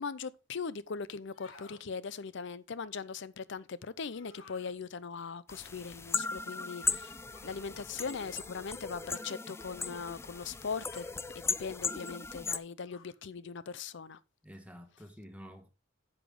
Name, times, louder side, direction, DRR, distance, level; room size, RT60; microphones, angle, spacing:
voice 1, 0.0-7.1 7.4-11.0 11.3-14.2, left 5 dB, 65° left, 0.6 m, -40 dB
sound 1, 1.2-1.8 4.1-4.7 7.3-7.6 9.0-9.4 10.7-11.2 12.8-13.2, left 2 dB, 90° left, 1.8 m, -56 dB
sound 2, 5.5-12.6, left 4 dB, 15° left, 0.4 m, -37 dB
voice 2, 14.4-15.7, equal, 5° right, 1.4 m, -50 dB
9.8 x 7.1 x 3.7 m
head